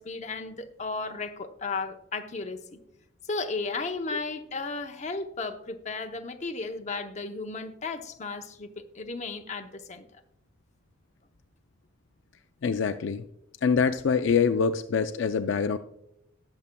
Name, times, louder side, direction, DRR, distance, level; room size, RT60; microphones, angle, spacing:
voice 1, 0.0-2.8 3.3-10.1, left 3 dB, 35° left, 0.7 m, -34 dB
voice 2, 12.6-13.3 13.6-15.8, left 6 dB, 65° left, 0.4 m, -25 dB
19.0 x 7.0 x 2.2 m
head